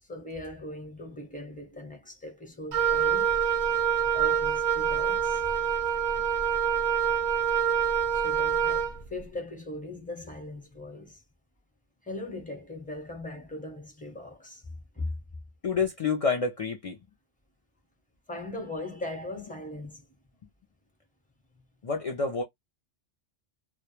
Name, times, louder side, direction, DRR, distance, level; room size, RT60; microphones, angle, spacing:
voice 1, 0.1-3.4 4.1-5.4 8.1-11.2 12.0-14.6 14.9-15.2 18.3-20.0, left 2 dB, 10° left, 0.6 m, -39 dB
Wind instrument woodwind instrument, 2.7-9.0, right 8 dB, 65° right, 0.3 m, -26 dB
voice 2, 15.6-17.0 21.8-22.4, left 5 dB, 70° left, 0.3 m, -28 dB
2.2 x 2.1 x 2.9 m
omnidirectional pair, 1.2 m